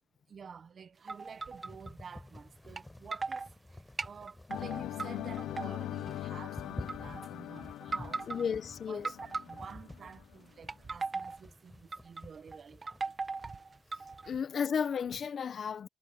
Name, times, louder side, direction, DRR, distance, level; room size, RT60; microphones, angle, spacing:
voice 1, 0.3-3.5 3.7-8.3 8.9-13.0 14.2-14.3, right 6 dB, 45° right, 1.1 m, -50 dB
sound 1, 1.1-14.4, left 1 dB, 10° left, 6.3 m, -52 dB
sound 2, 1.1-1.9 2.8-2.9 3.1-3.5 4.0-5.1 5.4-6.1 6.8-7.3 7.8-8.5 9.0-9.9 10.5-11.4 11.9-12.2 12.5-14.4, right 4 dB, 30° right, 1.6 m, -38 dB
sound 3, 4.5-10.4, left 13 dB, 85° left, 0.7 m, -41 dB
voice 2, 8.2-9.1 14.2-15.9, left 7 dB, 50° left, 1.0 m, -33 dB
cardioid pair, 90°, 0 cm